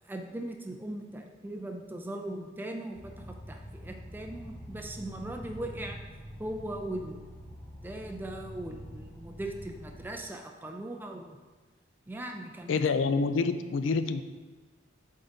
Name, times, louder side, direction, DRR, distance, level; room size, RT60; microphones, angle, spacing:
voice 1, 0.1-6.0 6.4-7.3 7.8-11.4 12.1-12.8, right 1 dB, 10° right, 2 dB, 0.4 m, -39 dB
sound 1, 2.9-10.0, equal, 10° left, 1.6 m, -45 dB
voice 2, 12.7-14.2, left 4 dB, 80° left, 11 dB, 0.4 m, -27 dB
7.8 x 3.8 x 4.0 m, 1.3 s
head